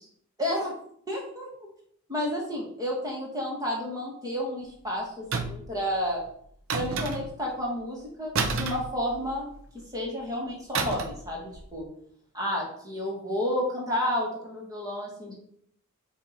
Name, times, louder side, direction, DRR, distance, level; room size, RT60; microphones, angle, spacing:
voice 1, 0.4-0.7 1.1-1.5 2.1-6.3 6.7-9.5 9.9-11.9 12.3-15.3, equal, 15° right, -2 dB, 1.6 m, -31 dB
sound 1, 5.3-5.8 6.7-7.5 8.3-9.5 10.7-11.3 11.5-11.7, right 4 dB, 60° right, 0.6 m, -30 dB
7.8 x 2.8 x 4.3 m, 0.65 s
head